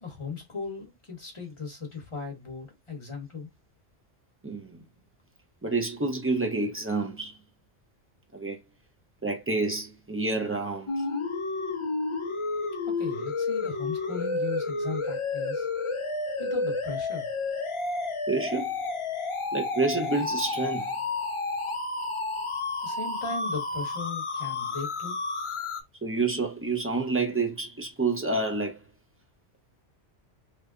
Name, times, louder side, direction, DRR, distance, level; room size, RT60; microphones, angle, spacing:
voice 1, 0.0-3.5 12.8-15.7 16.4-17.3 22.8-25.2, left 4 dB, 25° left, 1.2 m, -37 dB
voice 2, 4.4-4.8 5.6-7.4 8.3-8.6 9.2-11.0 18.3-18.8 19.5-20.9 26.0-28.8, right 3 dB, 20° right, 0.4 m, -28 dB
sound 1, 10.9-25.8, left 3 dB, 45° left, 0.4 m, -31 dB
3.3 x 2.2 x 3.5 m
omnidirectional pair, 1.2 m